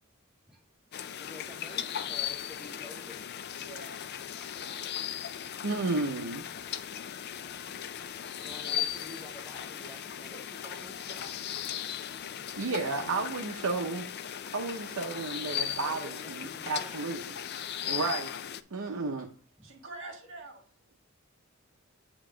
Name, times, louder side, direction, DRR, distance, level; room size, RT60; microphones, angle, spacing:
sound 1, 0.9-18.6, left 9 dB, 50° left, 0.4 m, -37 dB
voice 1, 1.2-3.2 8.4-11.4 15.8-17.2 19.6-19.7, left 1 dB, 5° right, -3 dB, 0.8 m, -49 dB
voice 2, 3.5-3.9 4.5-4.8 19.6-20.6, right 2 dB, 65° right, 2 dB, 1.7 m, -46 dB
voice 3, 5.6-6.4 12.6-14.0 14.5-17.3 17.9-18.3 18.7-19.3, right 3 dB, 80° right, 1 dB, 0.7 m, -32 dB
8.8 x 3.0 x 4.9 m, 0.41 s
head